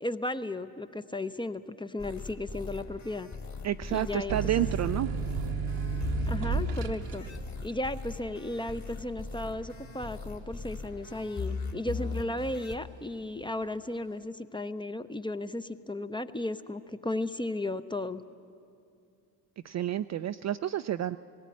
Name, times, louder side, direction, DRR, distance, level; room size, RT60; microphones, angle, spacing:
voice 1, 0.0-3.3 3.9-4.7 6.3-7.3 7.6-18.2, left 2 dB, 10° left, 11 dB, 0.6 m, -35 dB
sound 1, 2.0-12.8, left 4 dB, 35° left, 2.0 m, -39 dB
voice 2, 3.6-5.1 19.6-21.2, right 12 dB, 35° right, 10 dB, 0.4 m, -30 dB
sound 2, 4.3-11.6 12.0-12.7, right 5 dB, 75° right, 1.0 m, -34 dB
18.0 x 17.0 x 8.4 m, 2.4 s
hypercardioid pair, 60°, 49 cm